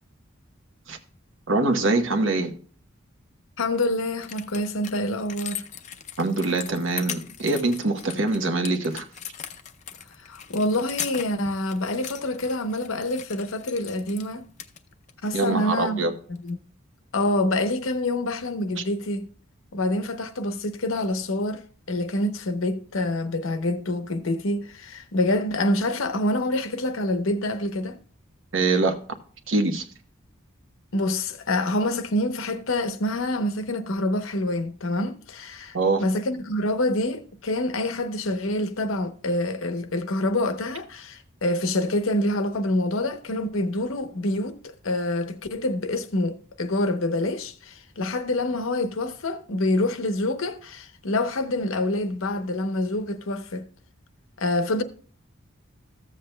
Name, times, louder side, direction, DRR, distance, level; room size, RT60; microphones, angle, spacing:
voice 1, 1.5-2.5 6.2-9.1 15.3-16.1 28.5-29.0 29.5-29.8 35.7-36.0, right 3 dB, 65° right, 1.0 m, -23 dB
voice 2, 3.6-5.6 10.2-14.4 15.2-16.0 16.3-16.6 17.1-19.3 19.7-28.0 30.9-53.7 54.4-54.8, left 1 dB, 80° left, 0.8 m, -26 dB
sound 1, 3.7-3.8 4.1-14.3 14.6-15.3 16.3-16.5, left 9 dB, 35° left, 0.5 m, -39 dB
14.5 x 7.5 x 2.2 m
head